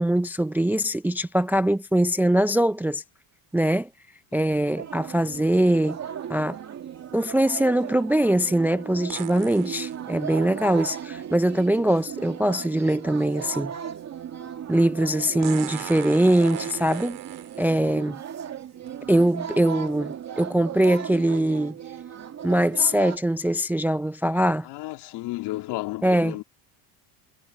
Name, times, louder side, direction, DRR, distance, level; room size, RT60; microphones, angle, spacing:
voice 1, 0.0-3.0 3.5-3.9 4.3-6.0 6.3-6.6 7.1-13.7 14.7-17.2 17.6-18.2 19.1-21.8 22.4-24.7 26.0-26.4, right 1 dB, 5° right, 0.4 m, -22 dB
sound 1, 2.6-2.7 9.1-10.0 12.0-12.1 15.4-17.9 18.9-19.0 19.6-19.9 20.8-20.9, right 15 dB, 65° right, 4.9 m, -39 dB
sound 2, 4.8-23.2, right 8 dB, 40° right, 2.4 m, -36 dB
voice 2, 24.6-26.4, left 18 dB, 70° left, 3.3 m, -33 dB
cardioid pair, 120°, 42 cm